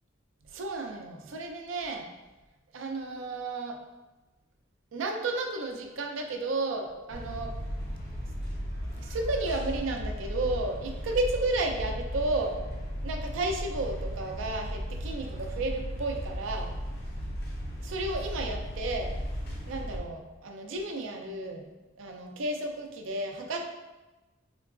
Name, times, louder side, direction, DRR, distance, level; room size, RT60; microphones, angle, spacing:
voice 1, 0.5-2.1 2.7-3.8 4.9-7.5 9.0-12.6 13.0-16.7 17.8-19.1 19.7-21.6 22.0-23.6, right 2 dB, 75° right, 3 dB, 0.4 m, -32 dB
sound 1, 7.1-20.0, equal, 50° left, 0.5 m, -36 dB
3.7 x 2.2 x 2.4 m, 1.1 s
head